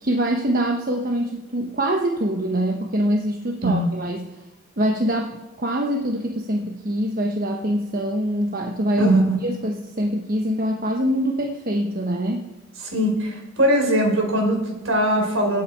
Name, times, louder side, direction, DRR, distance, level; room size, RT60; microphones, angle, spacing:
voice 1, 0.0-4.2 4.8-9.1 9.4-12.5, equal, 45° right, 2 dB, 1.1 m, -24 dB
voice 2, 9.0-9.4 12.8-15.6, right 1 dB, 75° right, 2 dB, 4.1 m, -21 dB
25.0 x 8.4 x 4.6 m, 1.0 s
head